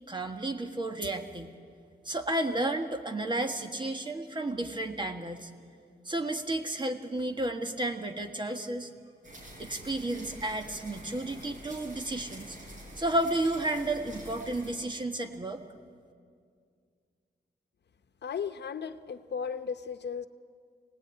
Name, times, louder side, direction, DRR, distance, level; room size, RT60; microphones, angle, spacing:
voice 1, 0.1-1.5 2.0-5.5 6.0-8.9 9.6-12.6 13.0-15.6, right 1 dB, 25° right, 5 dB, 1.5 m, -32 dB
sound 1, 9.2-14.7, right 1 dB, 45° right, 6.4 m, -47 dB
voice 2, 18.2-20.3, left 6 dB, 80° left, 10 dB, 0.9 m, -35 dB
26.5 x 18.5 x 9.1 m, 2.2 s
wide cardioid pair, 150°, 18 cm